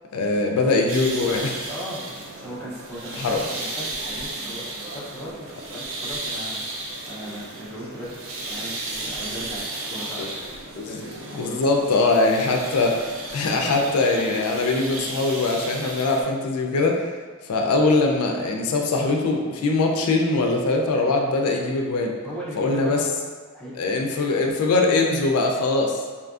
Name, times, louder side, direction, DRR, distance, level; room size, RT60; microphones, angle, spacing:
voice 1, 0.1-1.7 3.2-3.4 10.2-10.3 10.8-11.0 11.3-13.0 13.3-17.0 17.5-22.1 22.6-23.0 23.8-26.0, left 3 dB, 90° left, 1 dB, 0.4 m, -22 dB
sound 1, 0.9-16.2, right 2 dB, 65° right, 0.4 m, -34 dB
voice 2, 1.7-2.0 2.4-11.6 22.2-23.1 23.5-23.7, equal, 5° left, -8 dB, 0.5 m, -38 dB
2.6 x 2.4 x 2.3 m, 1.5 s
head